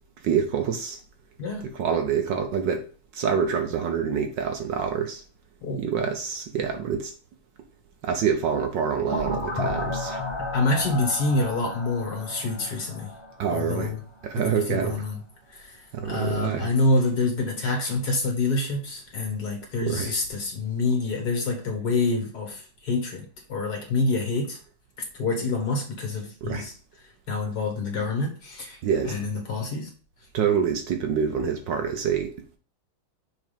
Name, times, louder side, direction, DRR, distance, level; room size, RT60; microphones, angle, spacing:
voice 1, 0.2-1.0 1.8-2.8 3.1-5.2 5.8-7.1 8.0-10.2 13.4-13.9 14.2-15.0 15.9-16.7 19.8-20.2 26.4-26.7 28.8-29.1 30.3-32.3, right 7 dB, 65° right, 1.4 m, -26 dB
sound 1, 9.1-13.8, left 2 dB, 25° left, 0.6 m, -33 dB
voice 2, 10.5-13.1 13.5-14.0 14.4-15.2 15.5-24.6 25.1-26.8 27.3-28.8 29.0-29.9, left 3 dB, 50° left, 2.3 m, -27 dB
6.4 x 3.9 x 5.0 m
omnidirectional pair, 2.3 m